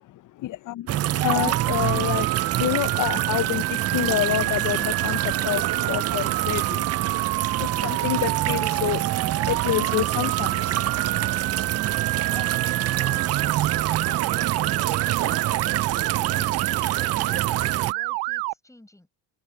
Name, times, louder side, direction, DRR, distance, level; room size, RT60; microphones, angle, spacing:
voice 1, 0.4-2.3 2.6-6.9 7.6-11.2, left 14 dB, 55° left, 0.6 m, -28 dB
sound 1, 0.9-17.9, right 13 dB, 40° right, 0.5 m, -26 dB
Motor vehicle (road) / Siren, 1.2-18.5, right 23 dB, 85° right, 0.8 m, -28 dB
voice 2, 12.3-15.7 16.3-19.1, left 1 dB, 10° left, 6.2 m, -49 dB
supercardioid pair, 85°, 38 cm